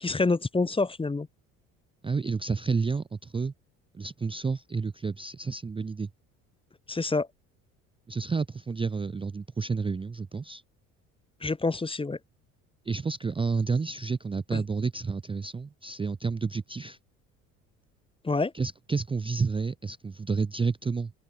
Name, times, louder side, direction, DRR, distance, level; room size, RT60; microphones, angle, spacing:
voice 1, 0.0-1.3 6.9-7.3 11.4-12.2 14.5-14.6 18.2-18.5, left 3 dB, 15° left, 1.0 m, -27 dB
voice 2, 2.0-3.5 3.9-6.1 8.1-10.6 12.9-17.0 18.5-21.1, right 4 dB, 15° right, 0.6 m, -30 dB
hypercardioid pair, 60°, 41 cm